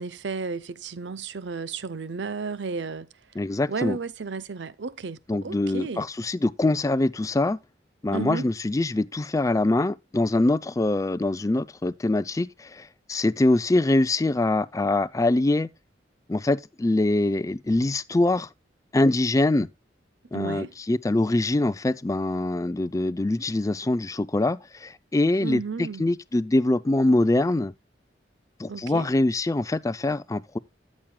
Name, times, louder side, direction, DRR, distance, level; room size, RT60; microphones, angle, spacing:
voice 1, 0.0-3.1 3.7-6.1 8.1-8.5 20.3-20.7 25.4-26.0 28.7-29.1, right 4 dB, 75° right, 0.6 m, -33 dB
voice 2, 3.4-4.0 5.3-7.6 8.0-15.7 16.3-18.5 18.9-19.7 20.3-27.7 28.6-30.6, left 2 dB, 20° left, 0.4 m, -24 dB
13.5 x 7.4 x 2.2 m
head